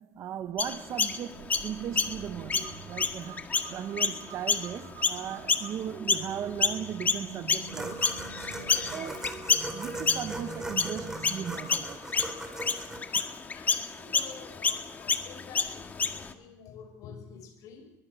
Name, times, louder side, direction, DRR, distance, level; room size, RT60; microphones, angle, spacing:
voice 1, 0.0-8.0 8.9-9.2 9.7-12.0, right 10 dB, 50° right, 1.3 m, -37 dB
Chirp tweet, 0.6-6.3 6.6-16.3, left 5 dB, 25° left, 1.9 m, -29 dB
sound 1, 1.3-11.5, right 6 dB, 75° right, 4.6 m, -46 dB
sound 2, 7.7-13.0, right 1 dB, 10° right, 4.8 m, -39 dB
voice 2, 8.4-9.3 13.1-17.9, left 6 dB, 65° left, 5.6 m, -49 dB
23.0 x 23.0 x 6.5 m
cardioid pair, 130°, 6 cm